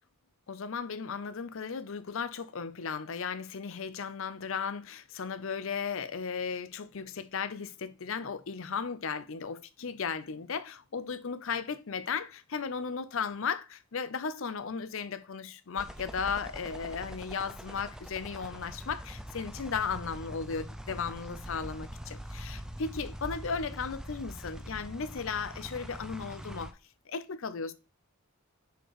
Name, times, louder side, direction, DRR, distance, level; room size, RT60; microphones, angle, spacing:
voice 1, 0.5-26.8 27.1-27.7, left 5 dB, 60° left, 0.6 m, -35 dB
sound 1, 15.8-26.7, equal, 5° right, 0.5 m, -43 dB
6.7 x 4.6 x 3.1 m
head